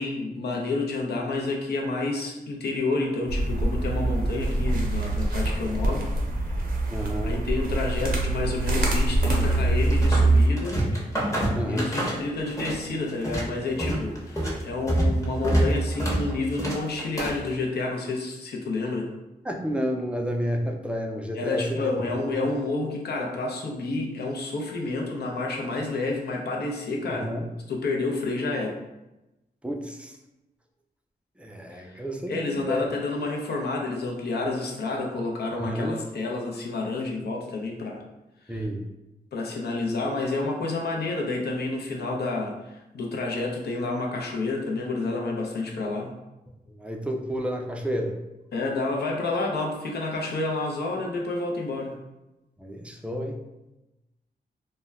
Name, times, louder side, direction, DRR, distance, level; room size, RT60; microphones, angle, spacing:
voice 1, 0.0-6.1 7.2-10.8 11.1-19.1 21.3-27.3 27.7-28.8 31.7-32.0 32.3-38.0 38.4-38.7 39.3-46.1 48.5-51.9, left 3 dB, 80° left, 0 dB, 0.5 m, -29 dB
sound 1, 3.3-10.5, right 2 dB, 60° right, 0.6 m, -24 dB
voice 2, 6.9-7.4 11.5-12.0 19.4-21.8 22.2-22.3 27.1-27.5 29.6-30.1 31.4-32.8 35.6-36.0 38.5-38.9 46.7-48.1 52.6-53.4, equal, 5° right, 2 dB, 0.4 m, -30 dB
sound 2, 9.3-10.3 10.6-12.8 13.1-17.5, right 1 dB, 20° left, 0.8 m, -26 dB
2.1 x 2.1 x 3.4 m, 0.98 s
cardioid pair, 65°, 17 cm